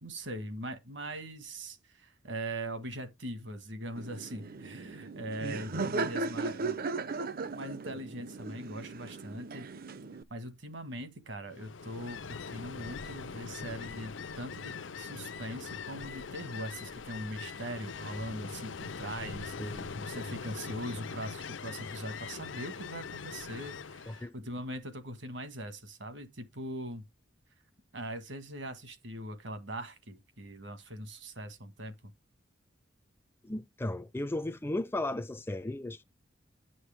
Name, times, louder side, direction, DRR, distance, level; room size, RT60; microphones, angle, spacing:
voice 1, 0.0-6.8 7.5-9.7 10.3-27.0 27.9-31.9, right 1 dB, 70° right, 1.6 m, -41 dB
Laughter, 4.0-10.2, right 3 dB, 50° right, 0.6 m, -37 dB
Ocean, 11.5-24.3, left 5 dB, 80° left, 0.6 m, -42 dB
voice 2, 19.6-19.9 24.1-24.3 33.4-36.0, left 1 dB, 10° left, 0.4 m, -35 dB
10.5 x 6.3 x 3.4 m
head